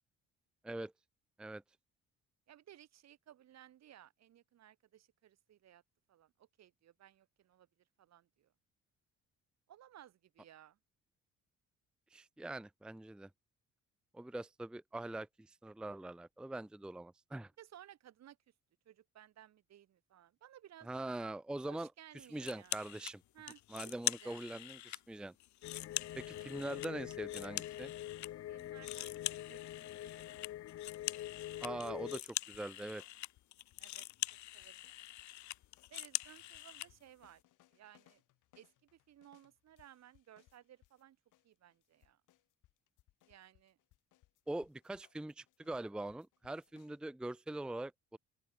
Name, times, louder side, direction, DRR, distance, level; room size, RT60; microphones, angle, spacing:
voice 1, 2.5-5.8 6.1-7.7 8.0-8.5 9.7-10.8 17.6-18.4 18.8-20.9 21.7-22.8 23.3-24.4 28.5-30.3 33.8-34.1 34.5-35.1 35.9-37.4 37.7-38.2 38.5-41.2 41.4-42.2 43.2-43.8, right 11 dB, 60° right, 1.5 m, -59 dB
voice 2, 12.1-13.3 14.1-17.5 20.9-21.9 22.3-23.2 23.7-25.3 26.2-27.9 31.6-33.0 44.5-48.2, right 2 dB, 5° right, 0.6 m, -43 dB
sound 1, 22.4-23.1 23.5-25.0 25.4-28.3 28.6-36.9, left 15 dB, 70° left, 0.9 m, -43 dB
sound 2, 25.6-32.2, left 13 dB, 50° left, 0.5 m, -45 dB
sound 3, 32.4-41.0 41.3-47.0, left 16 dB, 85° left, 5.4 m, -71 dB
open air
cardioid pair, 95°, 30 cm